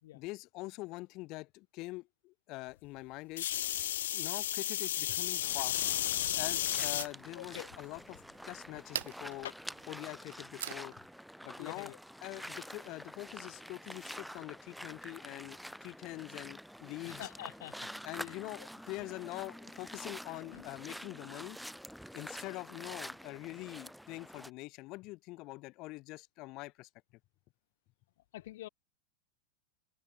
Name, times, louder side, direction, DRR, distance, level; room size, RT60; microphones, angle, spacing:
voice 1, 0.1-3.5 4.1-5.8 6.3-9.5 9.9-11.0 11.4-11.9 12.2-17.3 18.0-21.6 22.1-26.9, left 22 dB, 35° left, 2.5 m, -44 dB
sound 1, 3.4-7.1 7.7-8.2 9.5-9.6, left 12 dB, 85° left, 1.3 m, -33 dB
sound 2, 5.4-24.5, equal, ahead, 3.4 m, -48 dB
sound 3, 5.6-11.1, right 12 dB, 85° right, 2.9 m, -47 dB
voice 2, 7.4-7.7 11.6-12.0 17.0-17.8 18.2-18.7 20.5-20.7 28.3-28.7, left 15 dB, 65° left, 5.7 m, -46 dB
supercardioid pair, 165°, 0 cm